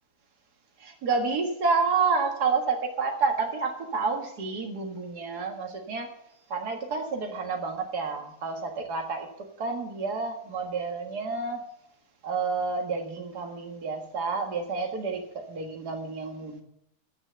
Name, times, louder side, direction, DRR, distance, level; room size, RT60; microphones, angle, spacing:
voice 1, 0.8-6.2 6.5-9.3 9.6-11.6 12.2-16.6, right 4 dB, 80° right, 2 dB, 2.3 m, -29 dB
13.0 x 9.2 x 6.8 m, 0.75 s
omnidirectional pair, 1.7 m